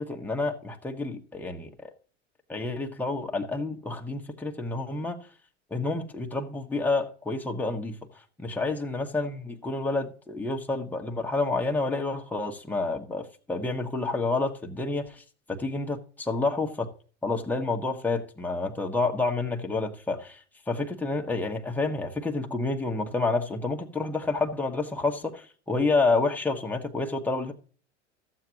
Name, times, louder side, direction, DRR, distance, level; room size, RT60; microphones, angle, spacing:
voice 1, 0.0-1.7 2.5-5.3 5.7-8.0 8.4-16.9 17.2-27.5, left 3 dB, 5° left, 1.3 m, -29 dB
14.0 x 7.5 x 2.9 m
hypercardioid pair, 85°, 36 cm